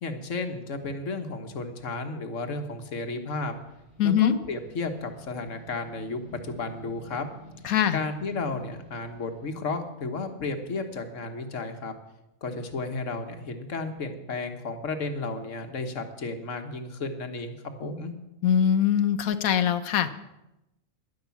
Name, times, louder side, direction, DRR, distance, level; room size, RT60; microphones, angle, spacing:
voice 1, 0.0-3.5 4.0-7.3 7.9-11.9 12.4-18.1, left 3 dB, 60° left, 6 dB, 1.6 m, -33 dB
sound 1, 3.2-9.6, right 1 dB, 55° right, 6.2 m, -50 dB
voice 2, 4.0-4.3 7.6-8.0 18.4-20.2, left 9 dB, 80° left, 11 dB, 1.3 m, -22 dB
11.0 x 10.5 x 7.1 m, 0.93 s
omnidirectional pair, 1.5 m